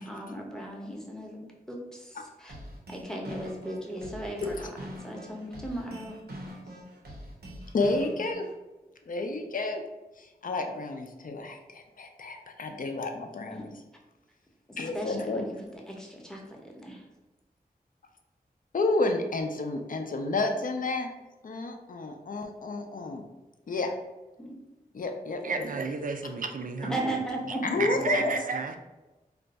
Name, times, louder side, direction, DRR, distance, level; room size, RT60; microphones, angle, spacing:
voice 1, 0.0-2.5 2.9-4.7 5.0-6.2 13.5-13.6 14.7-17.0 24.4-24.5 26.9-27.6 28.0-28.1, right 1 dB, 5° left, -1 dB, 0.7 m, -37 dB
sound 1, 2.5-8.5, equal, 85° right, 0.7 m, -43 dB
voice 2, 7.7-8.5 9.1-9.8 10.2-13.7 14.8-15.5 18.7-21.1 21.4-23.2 23.7-23.9 24.9-25.7 27.7-28.4, left 2 dB, 60° left, 4 dB, 0.4 m, -30 dB
voice 3, 25.4-27.0 27.8-28.8, right 4 dB, 60° right, 5 dB, 0.4 m, -31 dB
2.5 x 2.2 x 4.0 m, 1.1 s
wide cardioid pair, 75°, 16 cm